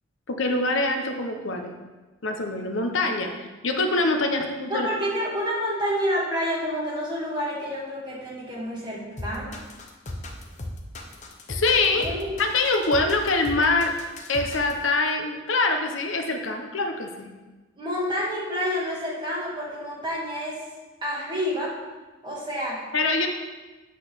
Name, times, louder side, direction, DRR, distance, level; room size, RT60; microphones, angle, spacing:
voice 1, 0.3-1.7 2.2-3.3 3.6-4.9 11.5-12.1 12.4-13.9 14.3-17.3 22.9-23.3, left 3 dB, 75° left, 4 dB, 0.9 m, -24 dB
voice 2, 4.7-9.6 11.9-12.3 17.8-20.6 21.0-21.8 22.2-22.8, equal, 20° right, -5 dB, 2.0 m, -29 dB
sound 1, 9.2-14.8, left 1 dB, 35° left, 0.9 m, -36 dB
8.4 x 4.0 x 6.8 m, 1.2 s
head